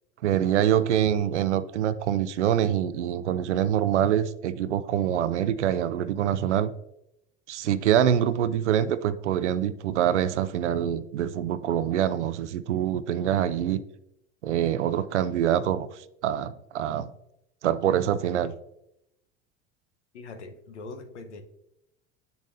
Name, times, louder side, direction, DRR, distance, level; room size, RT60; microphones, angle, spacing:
voice 1, 0.2-6.7 7.5-13.8 14.4-17.1 17.6-18.5, right 10 dB, 85° right, 0.5 m, -25 dB
voice 2, 20.1-21.4, left 3 dB, 85° left, 0.9 m, -41 dB
8.1 x 6.7 x 2.6 m
hypercardioid pair, 80°, 34 cm